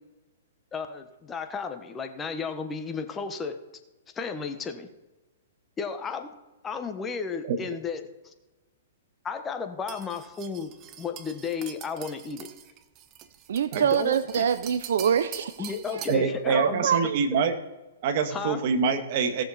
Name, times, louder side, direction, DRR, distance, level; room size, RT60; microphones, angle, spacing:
voice 1, 0.7-3.6 4.1-4.9 5.8-6.3 6.6-8.3 9.2-12.5 13.9-14.4 15.6-16.9 18.3-18.6, left 5 dB, 15° left, 7 dB, 1.2 m, -33 dB
sound 1, 9.9-16.3, right 10 dB, 30° right, 0.9 m, -44 dB
voice 2, 13.5-16.0 16.5-17.2, right 8 dB, 65° right, 13 dB, 0.6 m, -25 dB
voice 3, 16.1-17.5 18.0-19.4, right 5 dB, 50° right, 7 dB, 1.7 m, -25 dB
17.5 x 6.6 x 4.2 m, 1.1 s
hypercardioid pair, 120°, 0 cm